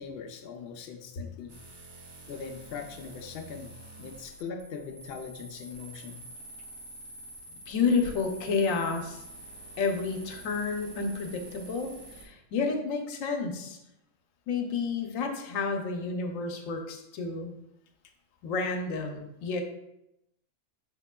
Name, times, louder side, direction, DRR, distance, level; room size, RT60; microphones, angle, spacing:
voice 1, 0.0-1.5 2.3-3.7 4.0-6.2, left 5 dB, 65° left, 3 dB, 0.7 m, -41 dB
sound 1, 1.5-12.3, right 2 dB, 40° right, 0.3 m, -47 dB
voice 2, 7.7-9.2 9.8-11.9 12.2-13.8 14.5-17.5 18.4-19.6, left 4 dB, 85° left, 4 dB, 1.0 m, -30 dB
5.0 x 3.5 x 2.2 m, 0.85 s
omnidirectional pair, 1.3 m